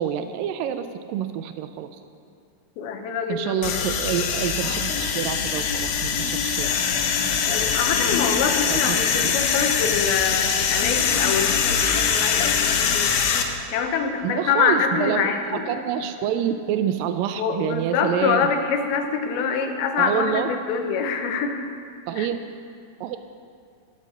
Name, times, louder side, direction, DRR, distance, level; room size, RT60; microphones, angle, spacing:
voice 1, 0.0-1.9 3.3-6.7 8.6-9.0 9.2-9.3 14.2-18.4 20.0-20.5 22.1-22.4 23.0-23.2, right 9 dB, 80° right, 9 dB, 2.1 m, -27 dB
voice 2, 2.8-4.0 7.5-13.2 13.7-15.6 17.4-21.6 22.2-22.3, left 6 dB, 90° left, 5 dB, 2.9 m, -25 dB
sound 1, 3.6-13.4, left 7 dB, 70° left, 2.1 m, -23 dB
18.5 x 6.5 x 6.4 m, 2.5 s
omnidirectional pair, 4.2 m